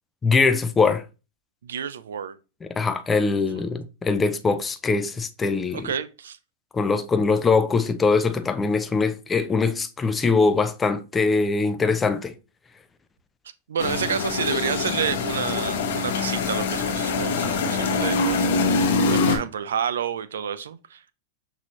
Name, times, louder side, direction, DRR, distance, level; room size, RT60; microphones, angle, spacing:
voice 1, 0.2-1.0 2.8-5.9 6.7-12.3, left 4 dB, 15° left, 0.4 m, -22 dB
voice 2, 1.6-2.4 5.7-6.4 13.7-18.5 18.7-21.0, right 8 dB, 85° right, 0.4 m, -29 dB
sound 1, 13.8-19.4, left 4 dB, 70° left, 1.0 m, -24 dB
5.9 x 2.7 x 3.1 m
hypercardioid pair, 120°, 0 cm